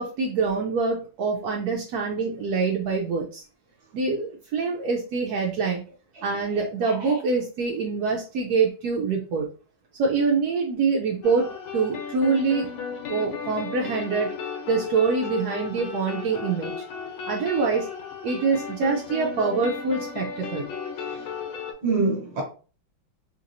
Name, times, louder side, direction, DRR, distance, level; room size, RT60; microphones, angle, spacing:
voice 1, 0.0-3.4 3.9-5.8 6.2-9.5 10.0-12.7 13.1-14.3 14.7-16.7 17.2-17.9 18.2-20.7, right 4 dB, 80° right, 0.8 m, -25 dB
sound 1, 11.2-21.7, left 6 dB, 90° left, 1.6 m, -35 dB
voice 2, 21.8-22.4, right 3 dB, 45° right, 0.9 m, -26 dB
3.2 x 2.9 x 2.5 m
omnidirectional pair, 2.2 m